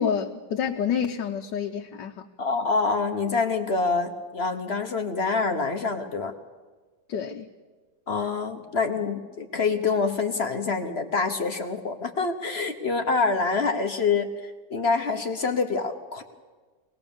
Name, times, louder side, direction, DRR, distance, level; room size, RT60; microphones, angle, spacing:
voice 1, 0.0-2.2 7.1-7.5, left 7 dB, 75° left, 3 dB, 1.5 m, -28 dB
voice 2, 2.4-6.3 8.1-16.2, left 4 dB, 40° left, 6 dB, 1.3 m, -26 dB
23.5 x 19.0 x 7.1 m, 1.3 s
omnidirectional pair, 1.9 m